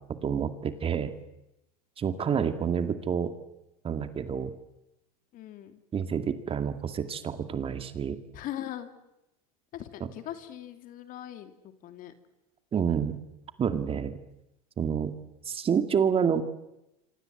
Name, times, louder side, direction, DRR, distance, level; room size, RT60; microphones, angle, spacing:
voice 1, 0.2-1.1 2.0-3.3 3.8-4.5 5.9-8.2 12.7-13.2 13.6-14.2 14.8-15.2 15.5-16.4, right 7 dB, 30° right, 9 dB, 2.2 m, -28 dB
voice 2, 2.3-2.6 5.3-5.8 8.3-8.9 9.7-12.1, left 12 dB, 50° left, 8 dB, 3.0 m, -41 dB
26.5 x 25.5 x 7.9 m, 0.91 s
hypercardioid pair, 100°, 19 cm